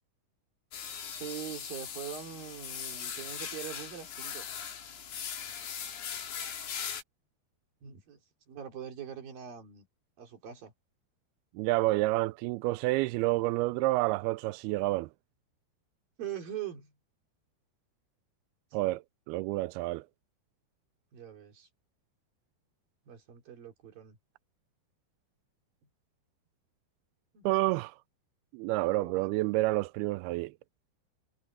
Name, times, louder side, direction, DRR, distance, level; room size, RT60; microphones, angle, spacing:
sound 1, 0.7-7.0, left 8 dB, 70° left, 4.9 m, -39 dB
voice 1, 1.1-4.5 7.8-8.2 8.5-9.9 10.2-10.7 16.2-16.9 18.7-18.8 21.1-21.7 23.1-24.2 27.3-27.5 28.9-29.3, right 10 dB, 60° right, 4.9 m, -42 dB
voice 2, 11.6-15.1 18.7-20.1 27.4-28.0 28.5-30.5, right 19 dB, 85° right, 2.3 m, -29 dB
omnidirectional pair, 4.8 m